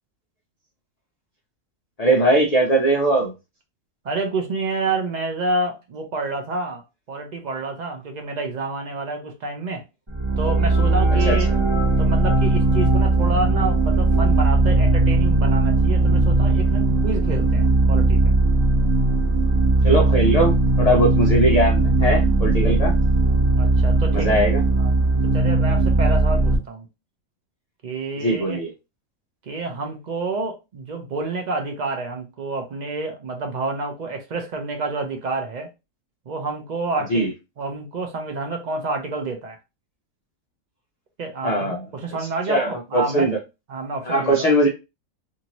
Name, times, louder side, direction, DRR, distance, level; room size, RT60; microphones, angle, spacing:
voice 1, 2.0-3.3 11.1-11.6 19.8-22.9 24.1-24.6 28.2-28.7 37.1-37.3 41.4-42.2 42.5-43.4 44.0-44.7, right 1 dB, 65° left, 0.4 m, -20 dB
voice 2, 4.0-6.8 7.1-9.8 10.4-11.5 12.0-18.2 23.5-24.4 24.8-24.9 25.3-26.9 27.8-28.6 29.4-35.7 36.3-37.3 37.6-39.6 41.2-43.3 43.7-44.5, right 3 dB, 65° right, 0.4 m, -28 dB
sound 1, 10.1-26.6, right 2 dB, 25° right, 0.8 m, -18 dB
2.6 x 2.6 x 2.9 m
omnidirectional pair, 1.5 m